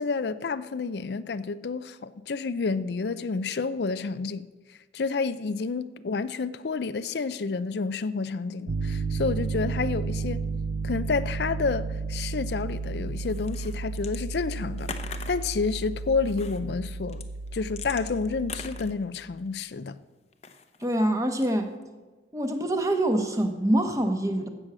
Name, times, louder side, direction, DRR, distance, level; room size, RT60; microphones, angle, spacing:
voice 1, 0.0-4.5 4.9-10.4 10.8-14.9 15.3-20.0, left 4 dB, 65° left, 0.5 m, -29 dB
Piano, 8.7-18.9, right 4 dB, 75° right, 0.6 m, -33 dB
sound 1, 13.2-14.2 14.5-15.5 16.3-16.6 17.1-19.5 20.3-20.9 21.3-21.8, left 6 dB, 35° left, 0.8 m, -41 dB
voice 2, 20.8-21.7 22.3-24.5, right 1 dB, 20° right, 1.1 m, -25 dB
15.5 x 6.4 x 7.5 m
head